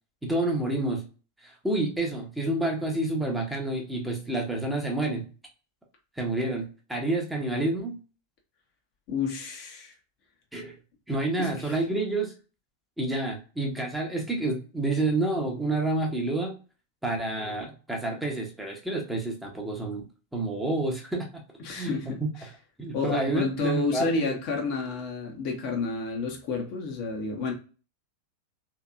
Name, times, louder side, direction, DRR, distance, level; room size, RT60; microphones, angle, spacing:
voice 1, 0.2-1.0 1.4-5.3 6.2-8.0 10.5-10.8 11.1-12.3 13.0-16.5 17.0-21.4 21.7-21.9 22.2-22.3 22.8-24.4, right 2 dB, 5° right, 0.9 m, -29 dB
voice 2, 9.1-9.9 11.4-11.8 21.6-22.2 22.9-27.5, left 4 dB, 45° left, 0.9 m, -30 dB
3.4 x 2.9 x 2.3 m
figure-of-eight pair, 90°, 0 cm